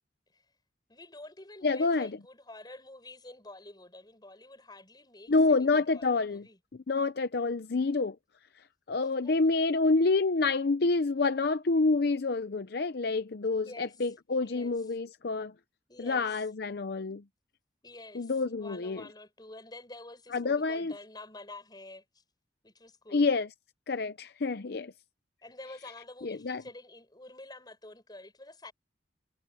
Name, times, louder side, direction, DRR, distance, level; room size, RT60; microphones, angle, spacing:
voice 1, 0.9-6.6 9.0-9.7 13.5-14.1 14.4-14.7 15.9-16.5 17.8-22.2 22.6-23.3 25.4-28.7, left 2 dB, 25° left, 7.1 m, -49 dB
voice 2, 1.6-2.1 5.3-6.4 6.9-8.2 8.9-15.5 16.0-17.2 18.1-19.0 20.3-20.9 23.1-23.5 23.9-24.9 26.2-26.6, left 3 dB, 60° left, 0.6 m, -28 dB
head